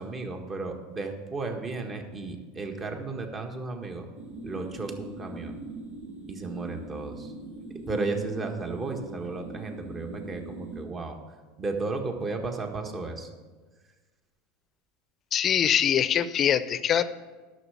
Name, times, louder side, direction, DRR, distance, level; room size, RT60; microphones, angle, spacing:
voice 1, 0.0-4.0 4.4-5.6 6.3-7.3 7.9-11.2 11.6-13.3, right 3 dB, 30° right, 4 dB, 1.5 m, -34 dB
sound 1, 4.1-10.8, right 2 dB, 80° right, 2.4 m, -41 dB
voice 2, 15.3-17.0, left 9 dB, 40° left, 14 dB, 0.6 m, -23 dB
11.0 x 6.6 x 7.1 m, 1.3 s
hypercardioid pair, 95°, 0 cm